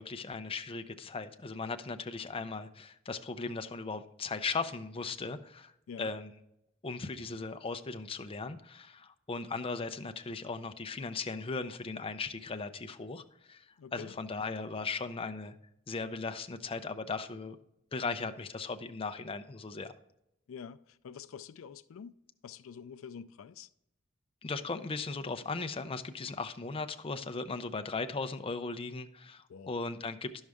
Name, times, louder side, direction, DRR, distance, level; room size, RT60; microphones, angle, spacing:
voice 1, 0.0-5.7 6.0-6.3 6.8-13.7 13.9-15.5 15.9-17.6 17.9-19.9 24.4-30.4, left 4 dB, 30° left, 0.5 m, -37 dB
voice 2, 13.8-14.1 20.5-22.1 22.4-23.7 29.5-29.8, left 7 dB, 80° left, 0.4 m, -47 dB
11.0 x 6.3 x 3.5 m
head